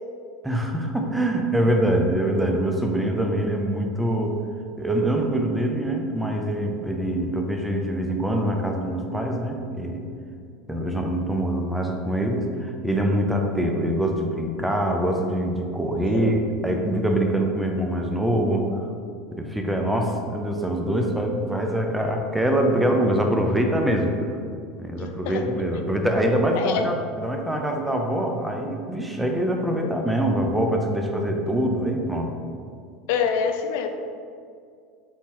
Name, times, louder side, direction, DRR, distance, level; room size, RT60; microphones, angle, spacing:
voice 1, 0.4-4.4 4.8-10.0 10.7-18.9 19.3-24.4 24.8-32.3, right 1 dB, 5° right, 2 dB, 0.4 m, -24 dB
voice 2, 25.0-25.4 26.6-26.9 33.1-33.9, left 7 dB, 70° left, 6 dB, 0.4 m, -25 dB
4.2 x 3.7 x 2.9 m, 2.3 s
supercardioid pair, 140°, 0 cm